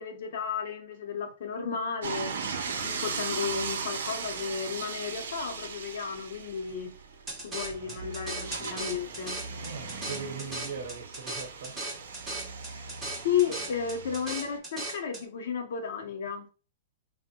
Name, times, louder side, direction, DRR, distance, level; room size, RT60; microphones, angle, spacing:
voice 1, 0.0-2.3 2.8-6.9 7.4-9.3 12.7-12.9 13.2-16.5, left 7 dB, 55° left, 0.7 m, -33 dB
sound 1, 2.0-14.6, right 5 dB, 90° right, 0.6 m, -38 dB
sound 2, 7.3-15.2, right 2 dB, 5° right, 0.6 m, -38 dB
voice 2, 9.6-11.8, right 5 dB, 65° right, 0.8 m, -40 dB
3.4 x 2.1 x 2.7 m
hypercardioid pair, 170°, 0 cm